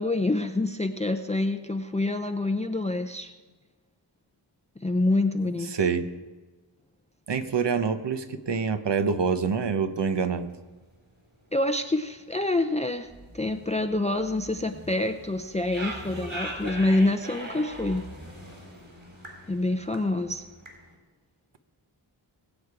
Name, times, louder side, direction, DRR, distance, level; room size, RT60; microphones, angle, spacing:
voice 1, 0.0-3.3 4.8-5.7 11.5-18.1 19.5-20.4, left 2 dB, 15° left, 7 dB, 0.6 m, -26 dB
voice 2, 5.4-6.1 7.3-10.5, right 5 dB, 65° right, 9 dB, 1.0 m, -26 dB
sound 1, 10.0-10.5 10.9-11.0 11.2-11.4 11.7-11.8 12.1-20.9, right 1 dB, 45° right, 4.3 m, -41 dB
21.0 x 8.5 x 4.8 m, 1.3 s
wide cardioid pair, 80°, 46 cm